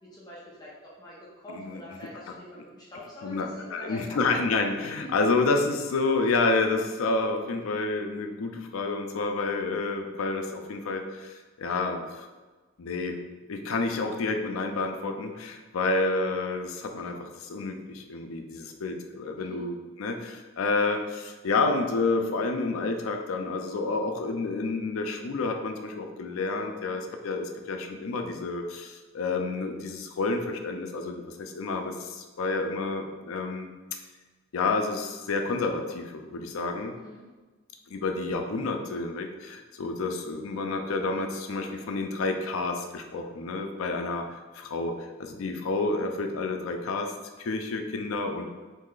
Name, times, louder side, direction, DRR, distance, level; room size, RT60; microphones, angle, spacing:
voice 1, 0.0-4.4 5.0-5.1 19.4-19.6 37.0-37.3, left 1 dB, 20° left, -7 dB, 0.5 m, -44 dB
voice 2, 1.5-1.8 3.2-12.3 12.8-13.2 13.5-33.7 34.5-37.0 37.9-44.2 44.5-47.1 47.4-48.5, left 3 dB, 85° left, 4 dB, 0.4 m, -29 dB
3.1 x 2.7 x 3.8 m, 1.3 s
head